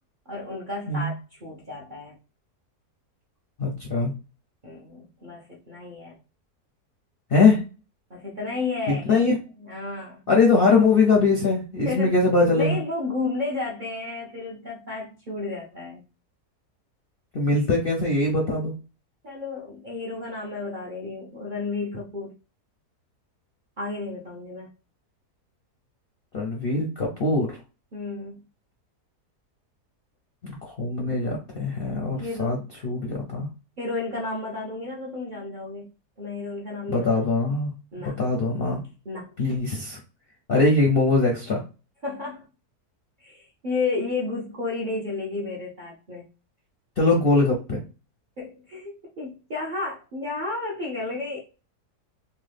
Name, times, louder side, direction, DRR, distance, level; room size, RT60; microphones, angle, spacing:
voice 1, 0.3-2.2 4.6-6.2 8.1-9.2 9.6-10.2 11.8-12.1 12.6-16.0 19.2-22.3 23.8-24.7 27.9-28.4 32.2-32.7 33.8-35.9 36.2-37.0 37.9-38.2 39.1-39.3 42.0-42.4 43.2-46.2 48.4-51.4, left 3 dB, 55° right, 0.5 m, -32 dB
voice 2, 3.6-4.1 7.3-7.6 8.9-9.4 10.3-12.8 17.3-18.7 26.3-27.5 30.4-32.6 32.8-33.5 36.9-37.7 38.2-38.8 39.4-40.0 40.5-41.6 47.0-47.8, left 3 dB, 60° left, 0.6 m, -21 dB
3.0 x 2.2 x 3.3 m
omnidirectional pair, 1.7 m